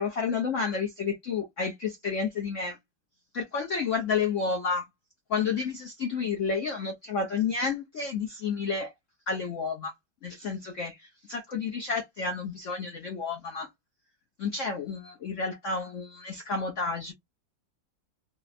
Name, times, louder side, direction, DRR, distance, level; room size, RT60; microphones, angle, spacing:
voice 1, 0.0-2.8 3.3-4.9 5.3-8.9 9.3-9.9 10.2-13.7 14.4-17.1, left 5 dB, 90° left, 0.6 m, -30 dB
4.1 x 2.1 x 2.5 m
omnidirectional pair, 2.2 m